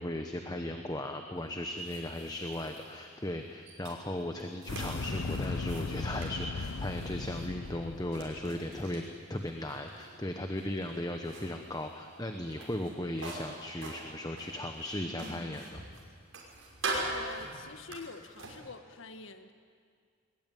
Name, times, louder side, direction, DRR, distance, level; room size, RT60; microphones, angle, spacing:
voice 1, 0.0-15.8, left 1 dB, 20° left, 5 dB, 1.0 m, -37 dB
sound 1, 1.3-18.6, right 2 dB, 75° right, 5.7 m, -44 dB
sound 2, 4.7-8.6, left 3 dB, 85° left, 0.7 m, -37 dB
voice 2, 17.1-19.5, left 4 dB, 70° left, 8 dB, 1.4 m, -46 dB
21.5 x 21.0 x 9.3 m, 2.1 s
head